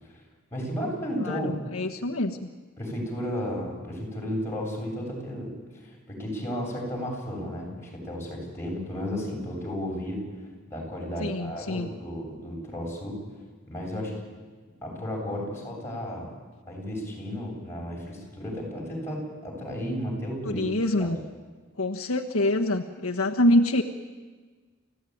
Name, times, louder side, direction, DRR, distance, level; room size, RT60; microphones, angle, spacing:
voice 1, 0.5-1.6 2.8-5.5 5.8-10.2 10.7-13.2 13.7-14.1 14.8-16.3 16.7-21.1, equal, 10° left, -2 dB, 7.7 m, -33 dB
voice 2, 1.2-2.5 11.2-11.9 20.4-21.2 21.8-23.8, left 1 dB, 80° left, 2 dB, 1.4 m, -25 dB
28.5 x 16.0 x 9.5 m, 1.4 s
head